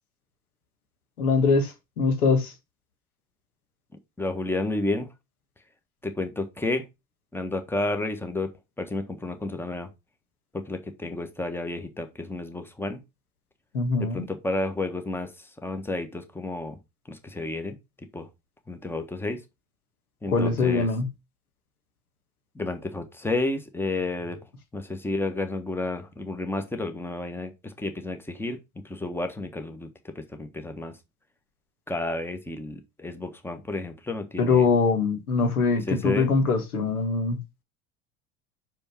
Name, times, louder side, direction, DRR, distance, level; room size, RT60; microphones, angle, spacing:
voice 1, 1.2-2.5 13.7-14.2 20.3-21.1 34.4-37.4, left 4 dB, 85° left, 1.7 m, -23 dB
voice 2, 4.2-5.1 6.0-6.8 7.3-8.5 8.8-9.9 10.5-13.0 14.0-16.8 17.1-17.8 18.1-18.3 18.7-19.4 20.2-20.9 22.5-24.4 24.7-28.6 28.8-31.0 31.9-34.7 35.9-36.3, left 2 dB, 5° left, 1.4 m, -31 dB
5.7 x 5.2 x 4.5 m
hypercardioid pair, 75°, 43 cm